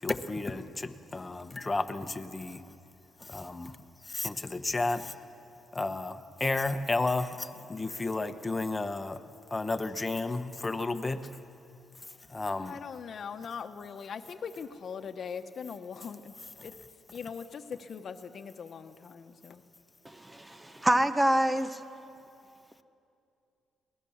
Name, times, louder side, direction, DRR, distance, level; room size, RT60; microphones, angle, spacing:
voice 1, 0.0-2.6 3.2-3.8 4.0-5.1 5.7-9.2 9.5-11.3 12.3-12.8, left 3 dB, 20° left, 9 dB, 1.1 m, -32 dB
voice 2, 12.6-16.3 16.6-16.7 17.1-19.6, left 6 dB, 55° left, 8 dB, 1.1 m, -41 dB
voice 3, 20.0-21.8, right 1 dB, 15° right, 10 dB, 0.9 m, -26 dB
22.5 x 19.0 x 7.2 m, 2.6 s
cardioid pair, 90°, 0 cm